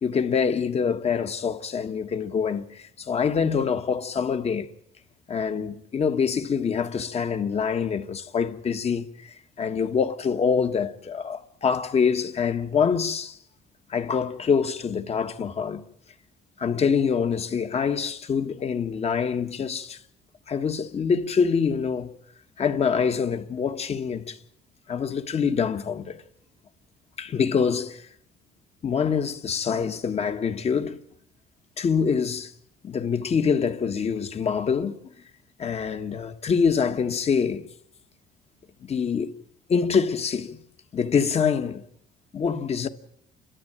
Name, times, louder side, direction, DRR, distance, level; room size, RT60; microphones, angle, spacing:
voice 1, 0.0-4.7 5.3-13.4 13.9-15.8 16.6-20.0 20.5-22.1 22.6-24.4 24.9-26.2 27.2-28.1 28.8-31.0 31.8-32.5 32.8-35.0 35.6-37.7 38.8-39.3 39.7-40.6 40.9-41.8 42.3-42.9, left 6 dB, 40° left, 1.6 m, -25 dB
30.0 x 13.5 x 9.0 m
cardioid pair, 110°, 17 cm